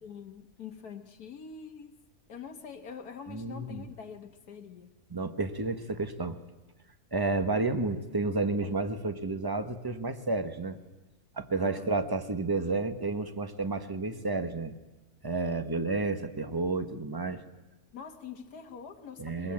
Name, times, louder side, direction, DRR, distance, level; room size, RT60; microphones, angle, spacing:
voice 1, 0.0-1.9 2.3-4.9 11.6-12.0 17.9-19.5, left 6 dB, 85° left, 4 dB, 1.8 m, -45 dB
voice 2, 3.3-3.8 5.1-6.4 7.1-10.8 11.4-14.7 15.2-17.4 19.2-19.5, right 3 dB, 15° right, 9 dB, 1.1 m, -31 dB
23.0 x 22.5 x 8.8 m, 1.1 s
omnidirectional pair, 1.6 m